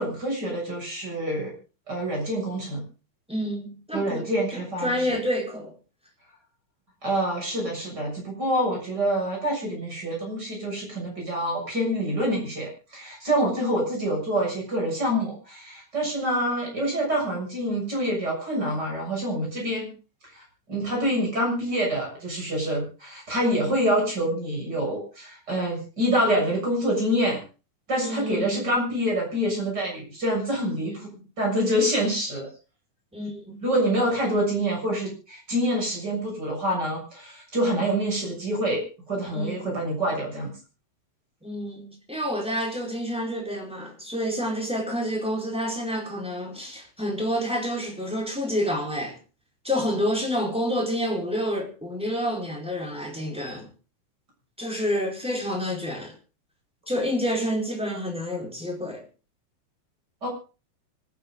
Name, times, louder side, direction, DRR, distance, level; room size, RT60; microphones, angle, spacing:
voice 1, 0.0-1.5 1.9-2.8 3.9-5.2 7.0-19.9 20.3-27.4 27.9-31.1 31.4-32.5 33.6-40.6 60.2-60.3, equal, 30° right, 7.4 m, -26 dB
voice 2, 3.3-5.7 23.5-23.8 28.0-28.6 30.8-30.9 33.1-33.6 39.3-39.7 41.4-49.2 49.6-53.7 54.6-56.1 56.9-59.0, equal, ahead, 4.4 m, -29 dB
25.0 x 10.5 x 3.8 m
omnidirectional pair, 3.7 m